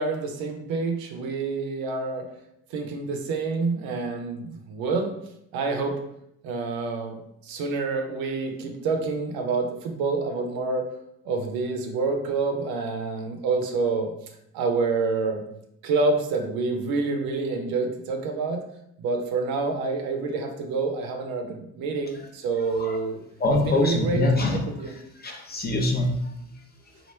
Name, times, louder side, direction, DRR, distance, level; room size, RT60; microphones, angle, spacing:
voice 1, 0.0-2.2 2.7-5.2 5.5-6.0 6.4-10.9 11.2-14.1 14.5-15.4 15.8-18.6 19.0-23.2 23.6-24.2 24.8-24.9, right 4 dB, 80° right, 3 dB, 0.7 m, -27 dB
voice 2, 23.4-24.6 25.2-26.3, left 2 dB, 25° left, 1 dB, 0.7 m, -24 dB
3.0 x 2.5 x 3.2 m, 0.78 s
supercardioid pair, 70°, 35 cm